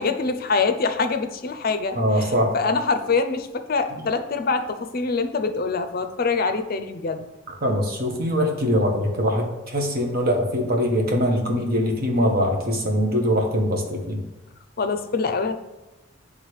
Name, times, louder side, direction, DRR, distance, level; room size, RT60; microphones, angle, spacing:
voice 1, 0.0-7.3 14.8-15.6, left 4 dB, 45° left, 9 dB, 0.5 m, -25 dB
voice 2, 1.9-2.6 7.6-14.2, equal, 50° right, 1 dB, 1.1 m, -22 dB
9.7 x 3.6 x 3.2 m, 1.0 s
head